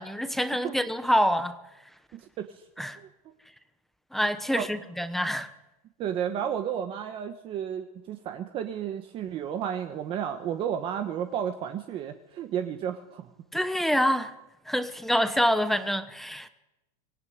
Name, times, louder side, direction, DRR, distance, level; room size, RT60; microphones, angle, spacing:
voice 1, 0.0-1.6 2.8-3.0 4.1-5.5 13.5-14.3 14.7-16.5, equal, ahead, 1.0 m, -26 dB
voice 2, 2.1-2.6 3.0-3.1 4.5-4.7 6.0-13.3, right 9 dB, 25° right, 1.3 m, -32 dB
25.0 x 19.0 x 9.5 m
supercardioid pair, 170°, 20 cm